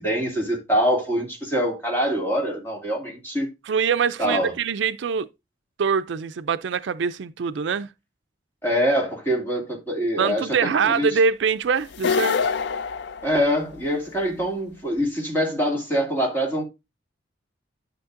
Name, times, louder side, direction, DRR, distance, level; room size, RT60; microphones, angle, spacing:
voice 1, 0.0-3.5 4.2-4.5 8.6-11.2 13.2-16.6, equal, 10° left, 2.4 m, -24 dB
voice 2, 3.7-5.3 5.8-7.9 10.2-12.5, right 6 dB, 65° right, 0.4 m, -23 dB
sound 1, 11.9-14.0, left 5 dB, 60° left, 0.4 m, -25 dB
11.5 x 6.3 x 2.5 m
head